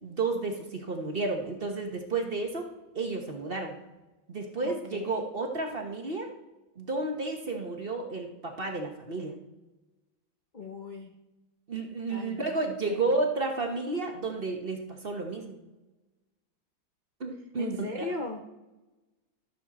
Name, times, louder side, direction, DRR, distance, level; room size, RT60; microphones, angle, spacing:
voice 1, 0.0-2.7 2.9-3.7 4.3-6.3 6.8-9.3 11.7-15.5 17.2-18.0, right 3 dB, 35° right, 2 dB, 1.0 m, -32 dB
voice 2, 4.6-5.3 10.5-11.1 12.1-13.1 17.6-18.4, left 3 dB, 70° left, 2 dB, 0.4 m, -38 dB
13.0 x 7.7 x 4.2 m, 1.1 s
omnidirectional pair, 2.2 m